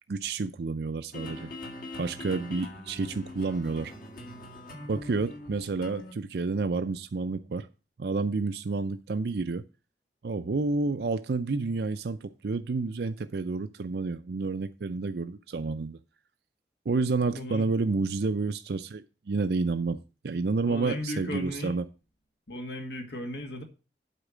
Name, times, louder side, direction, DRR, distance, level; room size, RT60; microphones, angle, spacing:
voice 1, 0.1-1.5 2.0-3.9 4.9-7.7 8.0-9.6 10.2-16.0 16.9-20.0 20.2-21.8, right 3 dB, 65° right, 0.5 m, -30 dB
sound 1, 1.1-6.1, left 1 dB, 50° left, 1.9 m, -42 dB
voice 2, 17.3-17.7 20.6-21.8 22.5-23.6, left 1 dB, 75° left, 2.1 m, -36 dB
8.2 x 4.7 x 7.2 m
head